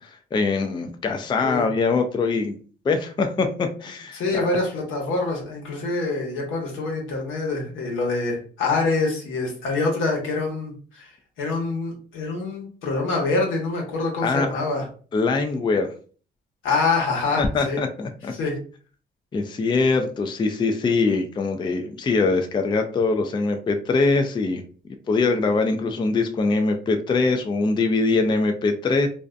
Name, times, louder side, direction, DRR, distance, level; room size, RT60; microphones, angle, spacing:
voice 1, 0.0-2.5 2.8-4.5 14.2-14.6 15.1-15.9 17.4-18.3 19.3-24.6 25.1-29.1, left 3 dB, 25° left, 6 dB, 0.3 m, -23 dB
voice 2, 4.1-11.1 11.4-14.9 16.6-17.8 18.3-18.5, left 3 dB, 85° left, -1 dB, 1.0 m, -25 dB
2.5 x 2.1 x 2.4 m, 0.41 s
cardioid pair, 90°, 20 cm